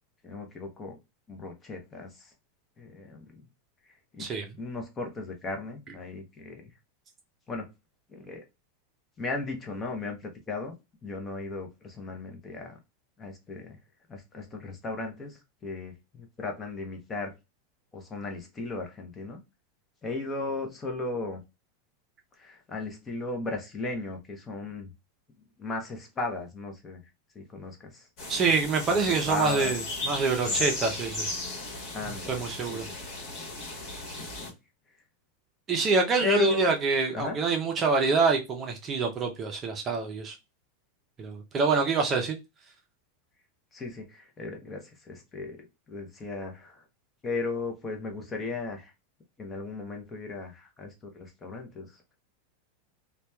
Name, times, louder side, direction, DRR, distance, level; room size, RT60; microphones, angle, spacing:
voice 1, 0.2-1.0 1.3-2.3 2.8-3.4 4.2-4.3 4.6-6.7 7.5-7.7 8.1-8.4 9.2-10.7 11.0-12.8 13.2-13.8 14.1-17.3 17.9-19.4 20.0-21.4 22.4-24.9 25.6-27.0 27.3-28.1 28.9-29.0 29.3-29.7 30.5-30.6 31.9-33.2 34.2-34.5 36.2-36.7 37.1-37.4 43.7-46.8 47.2-48.9 49.4-52.0, left 3 dB, 20° left, 0.7 m, -36 dB
sound 1, 28.2-34.5, left 2 dB, 50° left, 1.2 m, -35 dB
voice 2, 28.3-31.3 32.3-32.9 35.7-40.4 41.2-42.4, right 4 dB, 30° right, 0.5 m, -26 dB
2.7 x 2.2 x 2.2 m
supercardioid pair, 130°, 0 cm